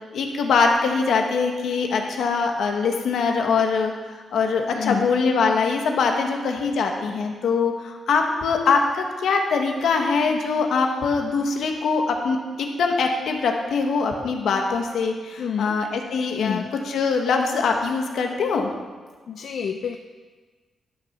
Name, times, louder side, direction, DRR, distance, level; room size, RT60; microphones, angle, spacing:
voice 1, 0.1-3.9 4.3-18.7, left 4 dB, 85° left, 3 dB, 1.5 m, -23 dB
voice 2, 4.7-5.1 15.4-15.8 16.4-16.7 19.3-20.0, left 7 dB, 70° left, 5 dB, 0.5 m, -28 dB
12.0 x 6.9 x 6.0 m, 1.4 s
wide cardioid pair, 125°, 0 cm